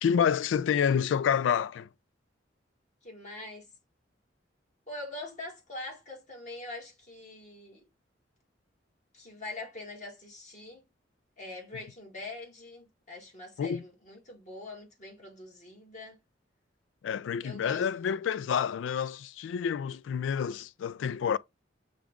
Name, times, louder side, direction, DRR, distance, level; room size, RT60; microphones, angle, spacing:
voice 1, 0.0-1.9 13.6-13.8 17.0-21.4, left 7 dB, 85° left, 0.3 m, -28 dB
voice 2, 3.0-3.7 4.9-7.8 9.1-10.8 11.4-16.2 17.4-17.8 18.1-18.2, left 2 dB, 40° left, 1.7 m, -43 dB
6.2 x 2.4 x 3.5 m
head